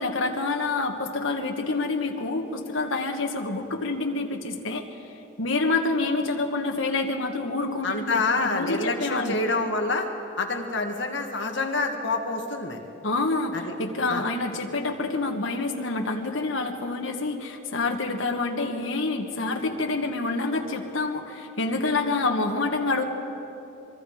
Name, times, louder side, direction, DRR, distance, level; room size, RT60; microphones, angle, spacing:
voice 1, 0.0-4.8 5.4-9.4 13.0-23.0, left 3 dB, 90° left, 2 dB, 1.5 m, -27 dB
voice 2, 7.8-10.1 10.4-12.8 13.5-13.7 14.1-14.2, left 3 dB, 65° left, 3 dB, 2.1 m, -27 dB
24.0 x 23.0 x 5.0 m, 2.9 s
head